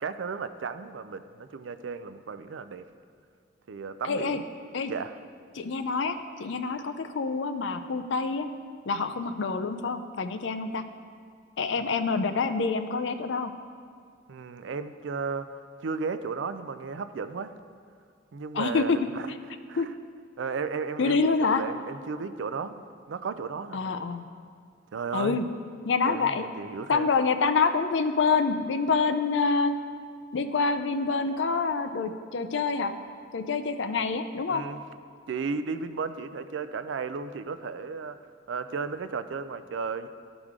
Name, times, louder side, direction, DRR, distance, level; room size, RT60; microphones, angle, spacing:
voice 1, 0.0-2.8 3.7-4.4 4.9-5.1 14.3-17.5 18.3-19.3 19.7-19.9 20.4-24.0 24.9-25.4 26.0-27.1 34.5-34.8 35.3-38.2 38.5-40.1, right 5 dB, 70° right, 11 dB, 0.4 m, -34 dB
voice 2, 4.0-4.4 4.7-4.9 5.5-8.5 8.9-10.8 11.6-13.5 18.5-19.0 19.8-19.9 21.0-21.6 23.7-24.2 25.1-25.4 25.9-26.4 26.9-29.7 30.3-32.9 33.3-34.6, left 4 dB, 65° left, 9 dB, 0.5 m, -26 dB
13.0 x 5.0 x 3.7 m, 2.2 s
head